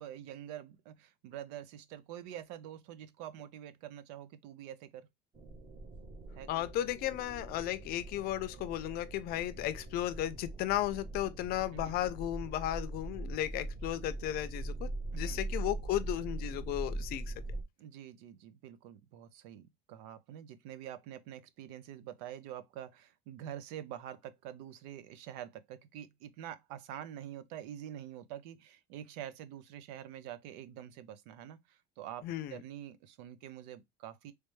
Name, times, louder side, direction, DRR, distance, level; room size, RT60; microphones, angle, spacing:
voice 1, 0.0-5.1 6.3-6.7 11.7-12.1 15.1-15.4 17.8-32.2 32.5-34.3, right 11 dB, 85° right, 0.6 m, -46 dB
sound 1, 5.3-17.6, right 2 dB, 25° right, 0.8 m, -42 dB
voice 2, 6.5-17.3 32.2-32.6, left 13 dB, 45° left, 0.5 m, -35 dB
3.3 x 3.2 x 3.1 m
cardioid pair, 150°, 21 cm